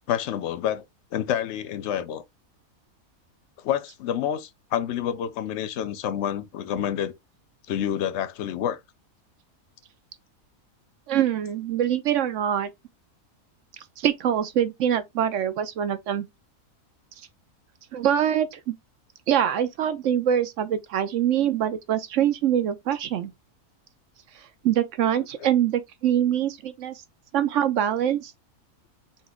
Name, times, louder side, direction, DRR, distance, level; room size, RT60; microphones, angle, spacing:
voice 1, 0.1-0.8 1.1-2.2 3.6-7.1 7.7-8.8 25.4-25.5, left 10 dB, 60° left, 0.7 m, -28 dB
voice 2, 11.1-12.7 14.0-16.3 17.9-18.8 19.3-23.3 24.3-27.0 27.3-28.3, right 10 dB, 65° right, 0.8 m, -24 dB
4.1 x 2.9 x 3.6 m
omnidirectional pair, 1.6 m